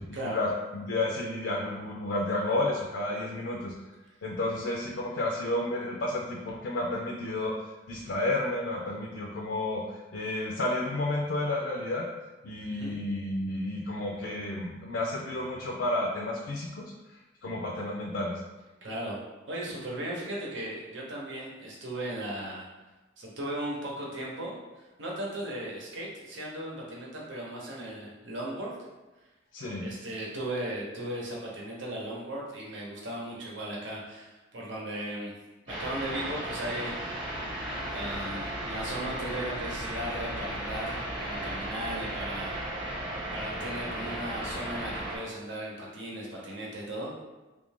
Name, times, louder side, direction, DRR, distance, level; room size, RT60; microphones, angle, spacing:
voice 1, 0.2-3.7 4.2-12.0 12.4-16.9 17.4-18.4 29.5-29.8, left 2 dB, 65° left, -1 dB, 0.4 m, -31 dB
voice 2, 12.7-13.0 18.8-19.2 19.5-22.7 23.2-28.7 29.8-35.3 35.7-37.3 37.6-42.7 43.3-47.1, right 1 dB, 70° right, -4 dB, 0.9 m, -37 dB
sound 1, 35.7-45.2, right 1 dB, 25° right, 1.0 m, -35 dB
3.2 x 2.5 x 3.5 m, 1.1 s
head